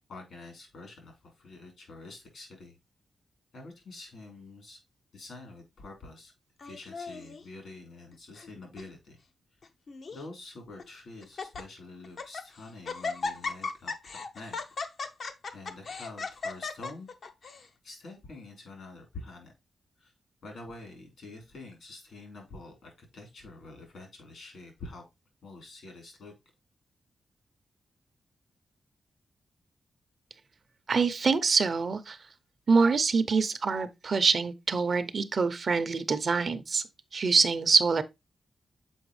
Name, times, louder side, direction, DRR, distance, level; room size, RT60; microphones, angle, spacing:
voice 1, 0.1-2.8 3.5-4.8 5.1-6.3 6.6-9.2 10.1-14.6 15.5-17.1 17.8-19.5 20.0-20.1 20.4-25.0 25.4-26.3, left 2 dB, 75° left, 3.4 m, -47 dB
Laughter, 6.6-7.4 8.1-8.5 8.8-8.9 9.6-10.2 10.8-10.9 11.2-11.6 12.0-12.5 12.8-17.6, left 4 dB, 60° left, 0.7 m, -36 dB
voice 2, 30.9-32.2 32.7-36.8 37.1-38.0, right 4 dB, 50° right, 0.6 m, -25 dB
7.0 x 4.6 x 3.1 m
cardioid pair, 95°, 0 cm